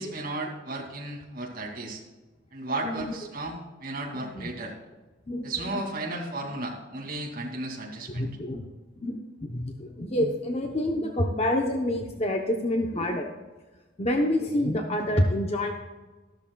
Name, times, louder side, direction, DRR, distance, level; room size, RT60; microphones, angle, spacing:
voice 1, 0.0-2.0 2.5-4.7 5.4-8.3, right 2 dB, 45° right, -1 dB, 2.4 m, -34 dB
voice 2, 2.8-3.2 4.3-4.5 5.3-5.8 8.1-8.7 9.0-13.3 14.0-15.7, left 1 dB, 30° left, 3 dB, 0.8 m, -27 dB
13.0 x 13.0 x 2.3 m, 1.2 s
head